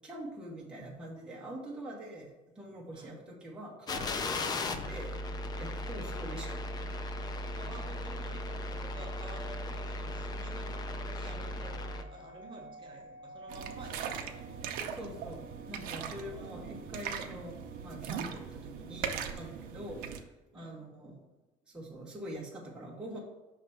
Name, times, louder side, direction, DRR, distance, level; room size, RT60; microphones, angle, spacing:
voice 1, 0.0-5.2 5.6-6.6 14.9-20.3 20.5-21.2 21.7-23.2, right 1 dB, 5° right, -4 dB, 0.9 m, -44 dB
voice 2, 2.9-3.4 4.4-4.6 7.5-14.7 16.3-17.2 20.5-20.9, right 2 dB, 30° right, 0 dB, 1.0 m, -51 dB
sound 1, 3.9-12.0, left 2 dB, 25° left, 0.4 m, -37 dB
sound 2, 8.0-19.0, right 1 dB, 85° left, 1.7 m, -56 dB
sound 3, 13.5-20.2, right 7 dB, 70° right, 0.6 m, -40 dB
5.8 x 3.3 x 5.5 m, 1.1 s
cardioid pair, 165°, 15 cm